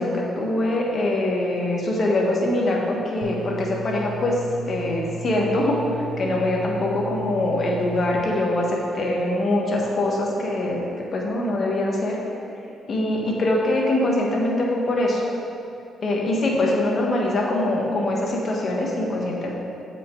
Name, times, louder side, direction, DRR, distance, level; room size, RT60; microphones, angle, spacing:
voice 1, 0.0-5.9 6.2-12.2 12.9-15.2 16.0-19.5, left 1 dB, 45° left, -1 dB, 1.4 m, -23 dB
sound 1, 3.2-8.2, right 3 dB, 85° left, 0.8 m, -35 dB
7.4 x 5.2 x 5.3 m, 2.6 s
cardioid pair, 90°, 0 cm